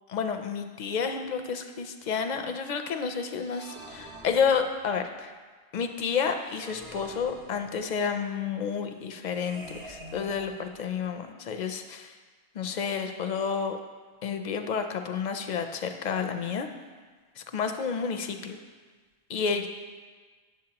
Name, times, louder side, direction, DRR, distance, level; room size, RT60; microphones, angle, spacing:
voice 1, 0.1-5.3 5.7-12.2 12.5-13.8 14.2-16.7 17.4-18.6 19.3-19.7, left 6 dB, 60° left, 7 dB, 0.5 m, -30 dB
sound 1, 3.4-5.1 6.4-8.0 9.3-11.1, right 1 dB, 30° right, 0.6 m, -47 dB
8.7 x 7.1 x 2.9 m, 1.4 s
omnidirectional pair, 1.1 m